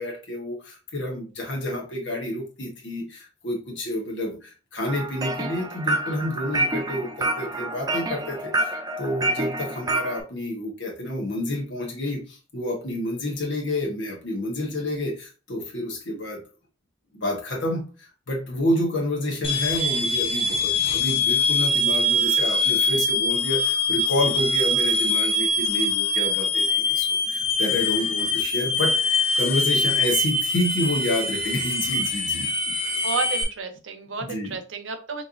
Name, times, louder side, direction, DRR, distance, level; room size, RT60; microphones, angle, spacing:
voice 1, 0.0-16.4 17.1-17.8 18.3-32.7 34.2-34.6, left 1 dB, 70° left, -1 dB, 1.2 m, -29 dB
sound 1, 4.9-10.2, right 2 dB, 20° right, 0.4 m, -28 dB
sound 2, 19.4-33.4, left 2 dB, 30° left, 0.6 m, -23 dB
voice 2, 33.0-35.2, right 5 dB, 80° right, 7 dB, 0.7 m, -31 dB
4.1 x 3.3 x 2.6 m, 0.33 s
head